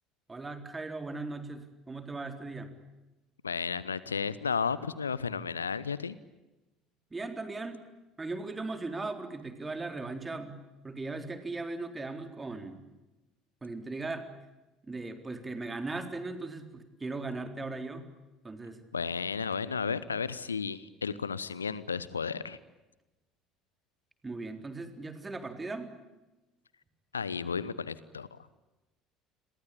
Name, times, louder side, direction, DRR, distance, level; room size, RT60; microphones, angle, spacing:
voice 1, 0.3-2.7 7.1-7.8 8.2-10.6 10.8-12.8 13.6-14.3 14.9-18.1 18.4-18.8 24.2-26.0, right 3 dB, 20° right, 7 dB, 3.9 m, -38 dB
voice 2, 3.4-6.2 18.9-22.6 27.1-28.4, left 5 dB, 80° left, 18 dB, 0.9 m, -33 dB
29.5 x 23.0 x 8.6 m, 1.0 s
figure-of-eight pair, 60°, 0 cm